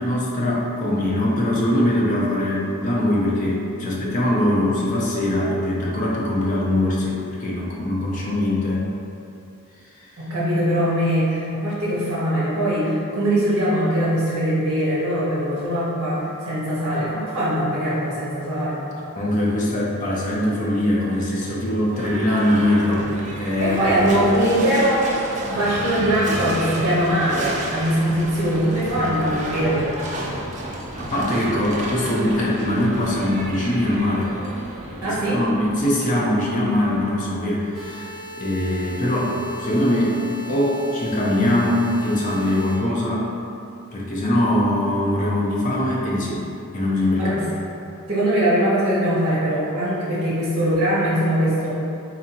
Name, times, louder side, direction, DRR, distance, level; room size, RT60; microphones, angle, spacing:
voice 1, 0.0-8.8 10.1-10.3 19.1-23.1 23.4-24.0 31.0-34.3 34.9-38.1 38.4-40.2 40.5-43.3 43.9-47.4, left 1 dB, 35° left, -4 dB, 0.5 m, -22 dB
voice 2, 10.2-18.8 23.6-25.1 25.5-29.9 35.0-35.4 47.2-47.5 48.1-51.7, right 1 dB, 50° right, -9 dB, 0.8 m, -21 dB
Livestock farm animals working animals / Bell, 21.8-37.7, right 1 dB, 35° right, 0.4 m, -31 dB
sound 1, 37.7-42.7, right 1 dB, ahead, 1.1 m, -37 dB
4.0 x 2.7 x 2.8 m, 2.7 s
head